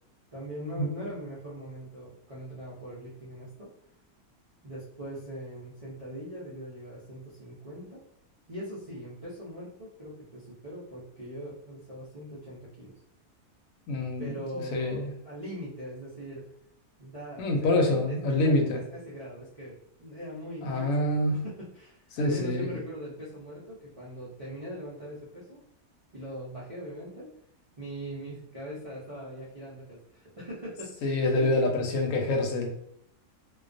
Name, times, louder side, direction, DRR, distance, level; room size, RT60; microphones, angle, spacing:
voice 1, 0.3-3.7 4.6-8.0 8.5-12.9 14.2-16.5 17.0-25.6 26.1-27.3 27.8-31.5, equal, 60° right, -9 dB, 0.3 m, -41 dB
voice 2, 13.9-14.3 14.7-15.1 17.4-18.8 20.6-21.4 22.1-22.8 31.0-32.7, left 2 dB, 75° left, 2 dB, 1.0 m, -26 dB
2.3 x 2.2 x 2.5 m, 0.72 s
omnidirectional pair, 1.5 m